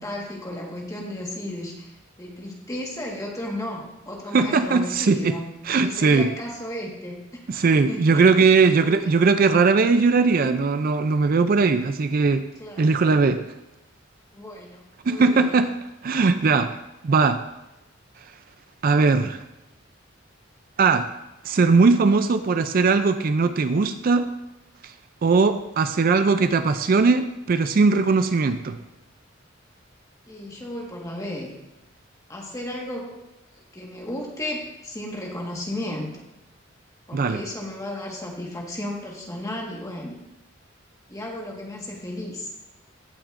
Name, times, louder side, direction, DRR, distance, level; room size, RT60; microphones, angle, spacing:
voice 1, 0.0-1.9 2.2-5.5 5.8-7.2 7.9-8.2 8.8-9.1 12.6-12.9 14.3-15.5 30.3-31.6 32.3-33.2 33.5-36.2 37.1-40.2 41.1-42.5, left 1 dB, 15° left, -1 dB, 1.5 m, -34 dB
voice 2, 4.3-5.3 5.7-6.3 7.5-12.4 12.8-13.4 15.1-15.7 16.0-16.7 17.0-17.4 18.8-19.4 20.8-21.1 21.4-24.3 25.2-28.8 37.1-37.4, right 4 dB, 45° right, 10 dB, 0.4 m, -19 dB
16.5 x 6.1 x 2.5 m, 0.93 s
head